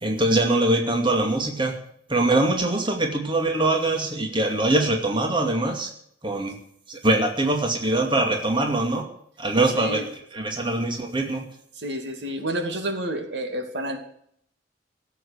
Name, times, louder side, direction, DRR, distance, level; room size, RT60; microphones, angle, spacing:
voice 1, 0.0-1.8 2.1-5.9 6.2-6.6 6.9-9.1 9.4-11.5, right 2 dB, 30° right, 3 dB, 2.5 m, -23 dB
voice 2, 9.7-10.1 11.8-14.0, right 1 dB, 70° right, 5 dB, 2.7 m, -29 dB
17.0 x 8.2 x 8.3 m, 0.66 s
head